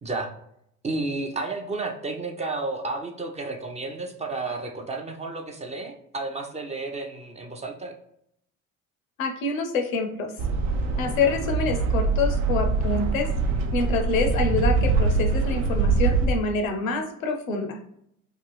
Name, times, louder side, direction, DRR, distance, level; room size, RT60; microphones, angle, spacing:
voice 1, 0.8-7.9, right 3 dB, 20° right, 2 dB, 0.4 m, -32 dB
voice 2, 9.2-10.3 11.0-13.3 13.7-17.8, left 3 dB, 90° left, 5 dB, 0.5 m, -26 dB
sound 1, 10.4-16.3, right 4 dB, 65° right, 0.5 m, -23 dB
2.5 x 2.3 x 3.1 m, 0.73 s
hypercardioid pair, 60°, 40 cm